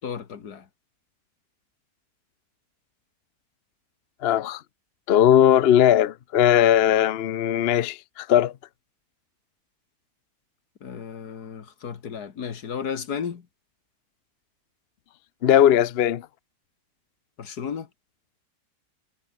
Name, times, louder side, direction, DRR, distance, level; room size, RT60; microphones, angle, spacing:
voice 1, 0.0-0.6 10.8-13.4 17.4-17.9, left 7 dB, 80° left, 2.2 m, -33 dB
voice 2, 4.2-4.6 5.1-8.5 15.4-16.2, left 10 dB, 55° left, 0.7 m, -19 dB
omnidirectional pair, 1.7 m